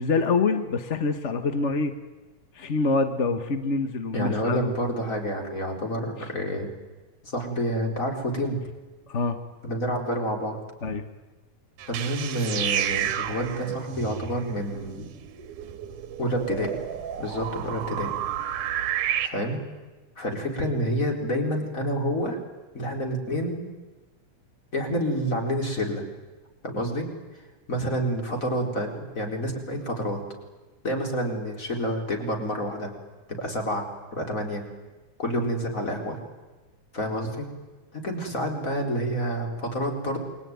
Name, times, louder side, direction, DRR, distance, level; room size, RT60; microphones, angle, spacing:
voice 1, 0.0-1.9 2.6-4.7 9.1-9.4 10.8-11.0, left 4 dB, 65° left, 8 dB, 0.6 m, -25 dB
voice 2, 4.1-6.7 7.2-8.6 9.6-10.6 11.9-15.1 16.2-16.8 17.2-18.1 19.2-19.6 20.2-22.4 22.7-23.6 24.7-26.0 26.6-27.1 27.7-30.2 30.8-32.9 33.3-33.9 34.1-34.6 35.2-36.2 36.9-37.5 37.9-40.2, equal, 25° left, 3 dB, 4.3 m, -28 dB
sound 1, 11.8-19.3, right 10 dB, 85° right, 2.9 m, -31 dB
28.0 x 22.5 x 9.4 m, 1.2 s
omnidirectional pair, 3.6 m